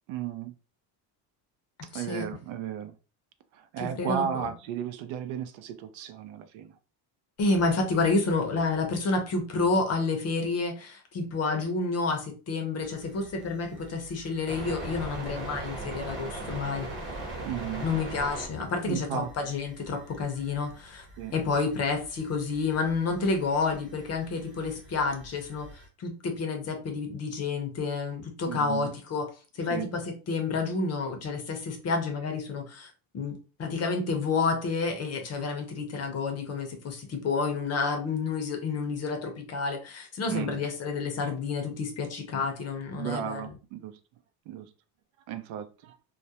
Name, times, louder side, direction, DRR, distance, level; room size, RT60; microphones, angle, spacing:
voice 1, 0.1-0.5 1.9-2.9 3.7-6.7 17.4-17.8 18.9-19.3 21.2-21.3 28.5-28.9 29.7-29.9 40.2-40.6 43.0-43.9 44.5-44.7 45.3-45.9, right 9 dB, 80° right, 0.5 m, -34 dB
voice 2, 1.9-2.3 3.8-4.5 7.4-16.9 17.8-21.0 21.3-29.3 29.6-43.6, left 4 dB, 35° left, 0.5 m, -29 dB
sound 1, 12.8-25.9, right 2 dB, 25° right, 1.0 m, -41 dB
2.3 x 2.0 x 2.7 m
cardioid pair, 140°, 46 cm